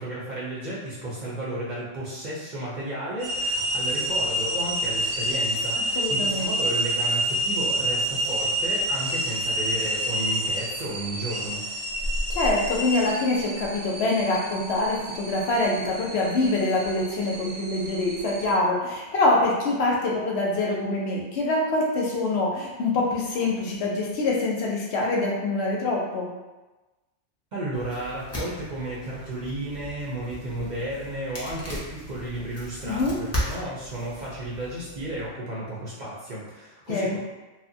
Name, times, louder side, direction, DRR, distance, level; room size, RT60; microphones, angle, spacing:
voice 1, 0.0-11.6 27.5-37.2, right 1 dB, 50° right, -7 dB, 0.6 m, -33 dB
sound 1, 3.2-18.5, right 1 dB, 85° right, 1.0 m, -28 dB
voice 2, 6.0-6.5 12.3-26.3 32.8-33.2 36.9-37.2, left 2 dB, 70° left, -2 dB, 0.8 m, -25 dB
sound 2, 27.7-35.3, equal, 20° left, 0.4 m, -37 dB
2.9 x 2.1 x 2.6 m, 1.1 s
omnidirectional pair, 1.2 m